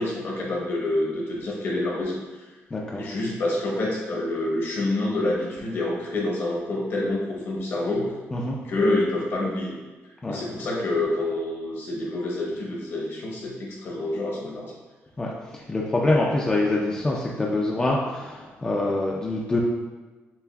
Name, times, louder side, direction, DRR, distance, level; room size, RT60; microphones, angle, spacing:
voice 1, 0.0-2.2 2.9-8.1 8.6-9.8 10.3-14.7, left 2 dB, 55° left, -3 dB, 0.9 m, -27 dB
voice 2, 2.7-3.0 8.3-8.6 10.2-10.4 15.2-19.6, left 2 dB, 15° left, -3 dB, 0.4 m, -25 dB
6.7 x 2.4 x 2.3 m, 1.3 s
wide cardioid pair, 170°, 5 cm